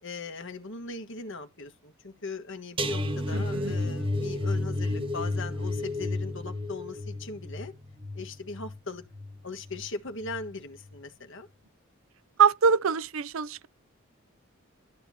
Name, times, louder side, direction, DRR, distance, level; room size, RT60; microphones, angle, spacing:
voice 1, 0.0-7.7 8.1-9.0 9.4-11.5, left 3 dB, 60° left, 1.5 m, -39 dB
sound 1, 2.8-9.8 10.2-10.5 10.8-11.0, left 2 dB, 25° right, 1.5 m, -32 dB
voice 2, 3.3-3.7 12.4-13.7, right 6 dB, 70° right, 0.5 m, -24 dB
13.0 x 8.0 x 2.8 m
head